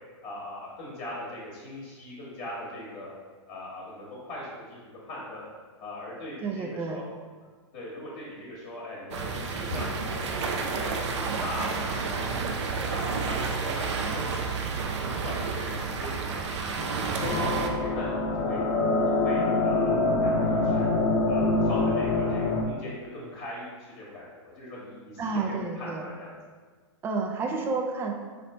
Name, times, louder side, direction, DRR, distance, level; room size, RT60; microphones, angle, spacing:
voice 1, 0.2-3.1 3.5-5.4 5.8-7.0 7.7-12.5 12.9-17.5 17.8-18.6 19.0-20.9 21.3-26.3, left 1 dB, 35° left, -6 dB, 1.1 m, -40 dB
voice 2, 6.4-7.0 25.2-26.0 27.0-28.1, right 4 dB, 15° right, 1 dB, 0.3 m, -30 dB
sound 1, 9.1-17.7, right 4 dB, 70° right, 0.5 m, -30 dB
sound 2, 17.2-22.6, left 2 dB, 60° left, 0.6 m, -25 dB
3.2 x 2.8 x 4.1 m, 1.5 s
hypercardioid pair, 130°, 16 cm